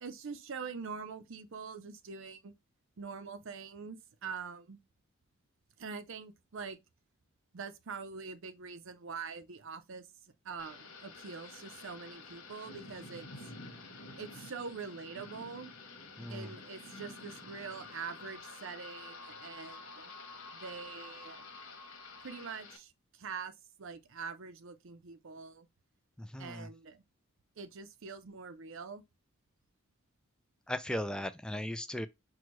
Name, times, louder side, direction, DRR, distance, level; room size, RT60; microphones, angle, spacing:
voice 1, 0.0-2.5 3.0-4.8 5.8-6.8 7.5-13.5 14.2-15.7 16.3-20.1 20.5-21.5 22.2-25.7 26.4-27.0 27.6-29.0, right 5 dB, 65° right, 0.6 m, -44 dB
Thunder / Rain, 10.6-22.8, left 3 dB, 80° left, 1.2 m, -51 dB
voice 2, 16.2-16.5 26.2-26.7 30.7-32.1, left 1 dB, 5° left, 0.3 m, -37 dB
sound 1, 16.9-22.5, left 3 dB, 65° left, 0.7 m, -52 dB
6.0 x 2.3 x 3.0 m
head